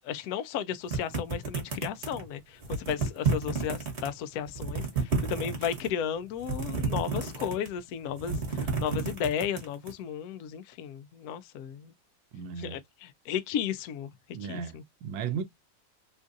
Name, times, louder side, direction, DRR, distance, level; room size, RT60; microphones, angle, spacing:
voice 1, 0.0-11.9 12.6-14.8, left 8 dB, 80° left, 0.8 m, -34 dB
sound 1, 0.9-2.3 2.6-4.1 4.5-5.9 6.4-7.8 8.1-9.9, right 4 dB, 40° right, 1.2 m, -31 dB
voice 2, 12.3-12.8 14.3-15.4, right 7 dB, 75° right, 1.2 m, -35 dB
3.8 x 2.4 x 2.5 m
omnidirectional pair, 2.1 m